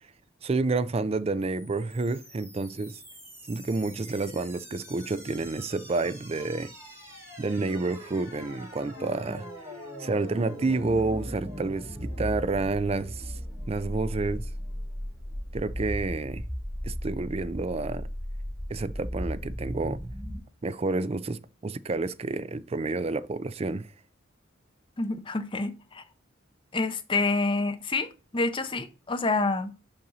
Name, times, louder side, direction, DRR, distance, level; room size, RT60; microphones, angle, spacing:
voice 1, 0.4-3.0 3.5-6.7 7.4-9.5 10.0-13.4 13.7-14.5 15.5-16.4 16.8-18.1 18.7-20.1 20.6-23.9, right 3 dB, 30° right, 0.4 m, -29 dB
sound 1, 1.4-20.4, equal, 15° right, 3.0 m, -38 dB
voice 2, 25.0-26.0 26.7-29.7, left 3 dB, 25° left, 0.7 m, -28 dB
5.7 x 5.3 x 4.0 m
head